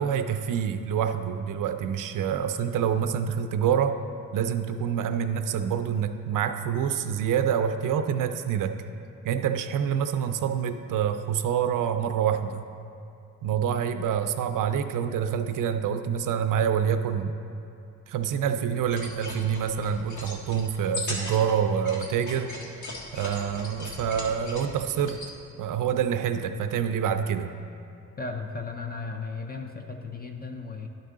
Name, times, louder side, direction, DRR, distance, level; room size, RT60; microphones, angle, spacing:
voice 1, 0.0-4.0 4.3-8.8 9.2-12.7 13.4-17.3 18.1-22.5 22.8-25.2 25.6-27.5, right 8 dB, 75° right, 8 dB, 0.5 m, -27 dB
sound 1, 18.8-25.3, left 2 dB, 65° left, 1.5 m, -39 dB
voice 2, 28.2-30.9, left 4 dB, 30° left, 4 dB, 0.5 m, -35 dB
11.0 x 4.7 x 3.7 m, 2.7 s
cardioid pair, 90°, 33 cm